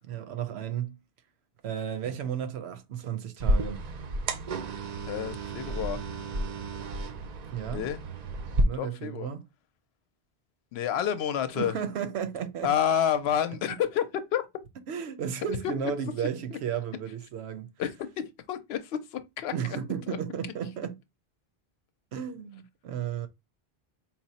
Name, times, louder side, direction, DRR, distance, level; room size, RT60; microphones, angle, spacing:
voice 1, 0.1-1.0 1.6-3.8 7.5-7.9 8.6-9.5 11.5-12.7 13.7-13.8 14.9-17.7 19.5-21.0 22.1-23.3, right 8 dB, 85° right, 0.9 m, -33 dB
sound 1, 3.4-8.6, right 2 dB, 55° right, 0.5 m, -31 dB
voice 2, 5.1-6.0 7.7-8.0 8.8-9.3 10.7-11.7 12.6-14.0 14.3-14.4 16.5-16.6 17.8-19.5, left 9 dB, 85° left, 0.8 m, -29 dB
4.4 x 2.0 x 4.0 m
omnidirectional pair, 1.1 m